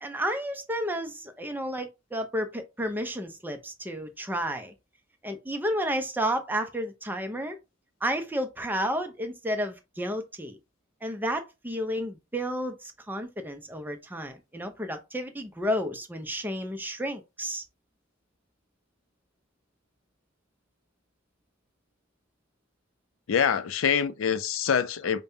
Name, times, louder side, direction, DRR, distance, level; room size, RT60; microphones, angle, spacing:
voice 1, 0.0-4.7 5.2-7.6 8.0-10.6 11.0-17.6, equal, 10° right, 0.6 m, -31 dB
voice 2, 23.3-25.2, left 7 dB, 75° left, 0.4 m, -25 dB
5.2 x 2.2 x 2.7 m
head